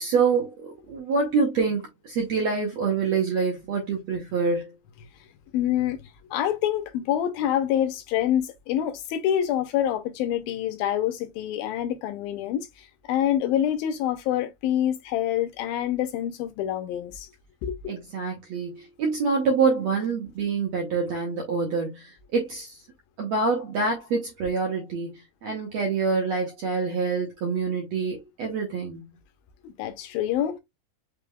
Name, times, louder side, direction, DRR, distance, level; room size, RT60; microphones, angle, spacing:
voice 1, 0.0-4.7 17.9-22.8 23.2-29.1, right 4 dB, 70° right, 1.7 m, -26 dB
voice 2, 5.5-6.0 6.3-17.3 17.6-17.8 29.6-30.6, left 11 dB, 80° left, 2.3 m, -26 dB
5.8 x 3.4 x 2.2 m
omnidirectional pair, 4.4 m